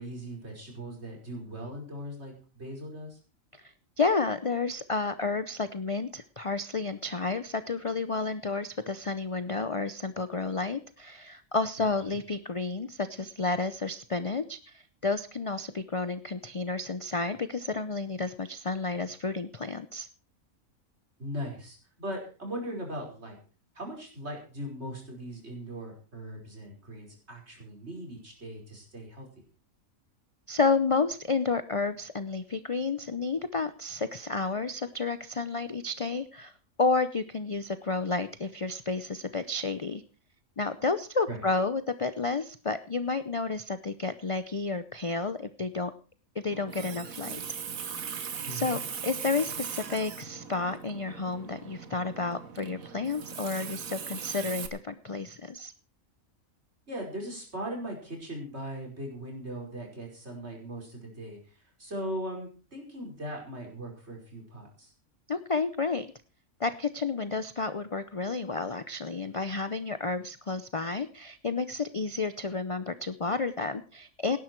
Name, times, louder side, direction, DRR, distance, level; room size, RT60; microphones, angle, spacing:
voice 1, 0.0-3.2 21.2-23.4 23.7-29.3 41.3-41.4 48.5-48.8 56.9-64.9, equal, 50° right, 0 dB, 5.5 m, -39 dB
voice 2, 3.6-20.1 30.5-36.5 36.8-40.0 40.6-45.9 46.3-47.4 48.5-55.7 65.3-66.1 66.6-74.4, left 3 dB, 35° left, 12 dB, 0.5 m, -31 dB
Water tap faucet, 46.5-54.7, right 7 dB, 80° right, 1.7 m, -39 dB
17.5 x 11.0 x 4.6 m, 0.36 s
omnidirectional pair, 1.4 m